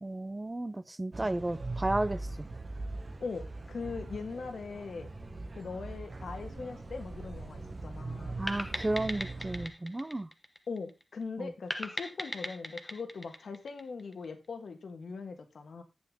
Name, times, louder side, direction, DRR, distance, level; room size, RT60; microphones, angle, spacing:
voice 1, 0.0-2.2 8.4-10.3 11.4-11.5, right 2 dB, 25° right, 0.6 m, -33 dB
sound 1, 1.1-9.7, right 2 dB, 40° right, 1.2 m, -41 dB
voice 2, 3.2-5.1 5.5-8.4 10.7-15.8, left 4 dB, 75° left, 1.5 m, -40 dB
sound 2, 8.5-11.0 11.7-14.3, left 1 dB, 10° left, 1.1 m, -39 dB
8.7 x 7.1 x 3.6 m
cardioid pair, 55°, 0 cm